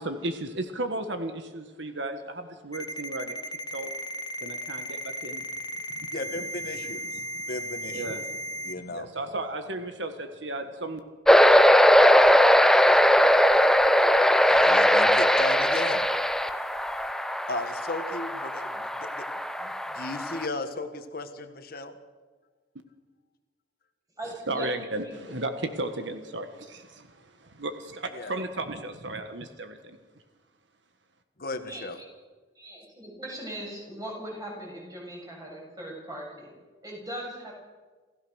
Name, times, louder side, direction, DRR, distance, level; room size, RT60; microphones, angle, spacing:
voice 1, 0.0-3.4 3.7-3.9 4.4-5.4 5.9-6.1 6.4-6.5 7.0-7.5 7.9-11.0 24.5-30.0, right 2 dB, 70° right, 7 dB, 1.6 m, -35 dB
Ringtone, 2.7-8.7, equal, 20° left, 1.1 m, -35 dB
voice 2, 6.1-7.2 7.5-8.2 8.6-9.1 14.4-16.3 17.5-19.3 19.6-21.9 28.1-28.4 31.4-32.0, left 2 dB, 55° left, 7 dB, 1.6 m, -36 dB
sound 1, 11.3-20.5, equal, 5° left, 0.7 m, -20 dB
voice 3, 24.2-24.7 25.0-25.3 31.6-31.9 32.6-36.5 36.8-37.5, right 1 dB, 20° right, -1 dB, 7.5 m, -39 dB
28.0 x 15.5 x 6.5 m, 1.4 s
head